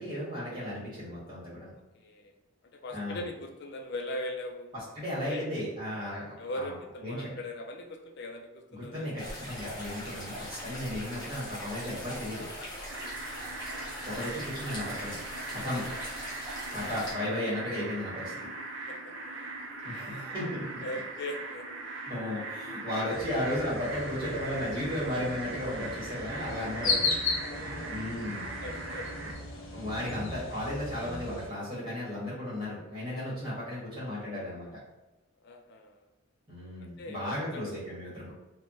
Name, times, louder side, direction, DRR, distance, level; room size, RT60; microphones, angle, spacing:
voice 1, 0.0-1.7 2.9-3.3 4.7-6.8 7.0-7.3 8.7-12.5 14.0-15.1 15.5-15.9 16.7-18.5 19.8-20.8 22.0-27.1 27.9-28.5 29.7-34.7 36.5-38.3, left 1 dB, 20° right, -9 dB, 1.4 m, -35 dB
voice 2, 1.9-2.3 2.7-4.7 5.2-5.6 6.4-9.1 11.0-11.3 12.9-13.2 15.6-16.0 16.6-16.9 18.9-19.1 19.4-19.5 19.9-20.4 20.8-21.7 23.1-23.2 26.7-27.5 28.4-29.2 30.0-30.2 35.4-36.0 36.8-37.7, left 1 dB, 55° left, 4 dB, 0.4 m, -41 dB
sound 1, 9.2-17.1, equal, 20° left, 0.8 m, -41 dB
sound 2, 12.9-29.3, right 3 dB, 60° right, 0.4 m, -40 dB
sound 3, 23.1-31.5, left 3 dB, 70° left, 0.8 m, -36 dB
3.4 x 2.1 x 2.7 m, 1.1 s
head